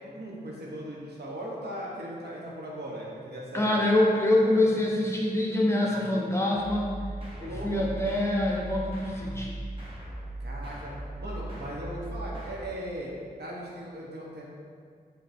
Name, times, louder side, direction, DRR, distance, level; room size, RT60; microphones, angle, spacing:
voice 1, 0.0-3.8 7.4-7.9 10.4-10.9 11.2-13.1 13.4-14.4, right 1 dB, 80° right, -4 dB, 0.9 m, -38 dB
voice 2, 3.5-6.9 7.4-9.5, left 1 dB, 15° left, -3 dB, 0.6 m, -25 dB
sound 1, 6.5-12.7, right 1 dB, 30° right, 0.7 m, -38 dB
6.6 x 2.2 x 2.5 m, 2.1 s
wide cardioid pair, 105°, 17 cm